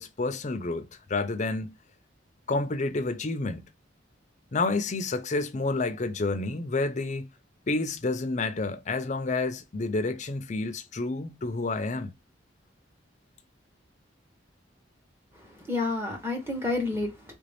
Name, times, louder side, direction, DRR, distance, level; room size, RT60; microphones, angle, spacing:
voice 1, 0.0-1.7 2.5-3.6 4.5-7.3 7.7-12.1, left 3 dB, 40° left, 0.5 m, -29 dB
voice 2, 15.3-17.4, left 2 dB, 15° right, 1.0 m, -30 dB
3.4 x 2.5 x 3.4 m
head